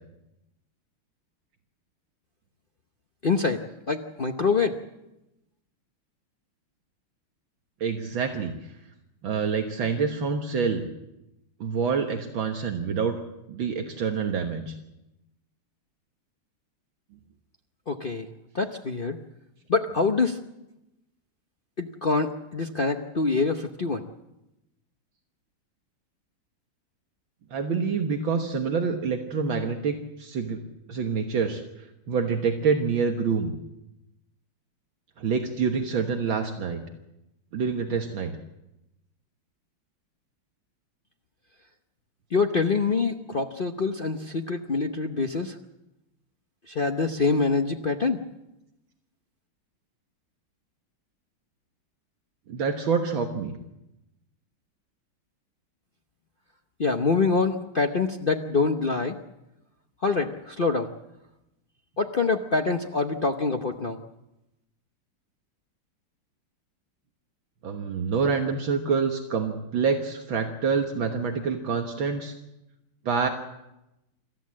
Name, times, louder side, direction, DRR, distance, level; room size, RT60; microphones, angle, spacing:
voice 1, 3.2-3.6 3.9-4.8 17.9-18.3 18.5-19.2 19.7-20.4 21.8-24.0 42.3-45.5 46.7-48.2 56.8-59.2 60.0-60.9 62.0-64.0, left 4 dB, 75° left, 4 dB, 0.5 m, -25 dB
voice 2, 7.8-8.5 9.2-10.9 11.6-13.2 13.5-14.8 27.5-30.6 30.9-31.6 32.1-33.5 35.2-36.8 37.5-38.3 52.5-53.5 67.6-72.3 73.1-73.3, right 5 dB, 65° right, 4 dB, 2.0 m, -26 dB
26.5 x 14.0 x 7.5 m, 0.92 s
omnidirectional pair, 2.4 m